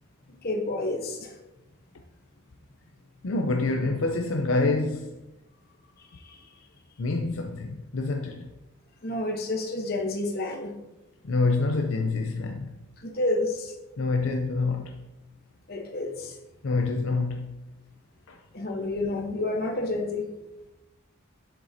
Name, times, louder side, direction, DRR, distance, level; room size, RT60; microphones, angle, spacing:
voice 1, 0.4-1.3 6.1-6.4 9.0-10.8 13.0-13.7 15.7-16.3 18.5-20.3, left 2 dB, 45° left, 1.1 m, -29 dB
voice 2, 3.2-5.2 7.0-8.5 11.2-12.7 14.0-15.0 16.6-17.5 18.3-18.4, left 3 dB, 70° left, 0.6 m, -26 dB
7.7 x 7.1 x 2.8 m
head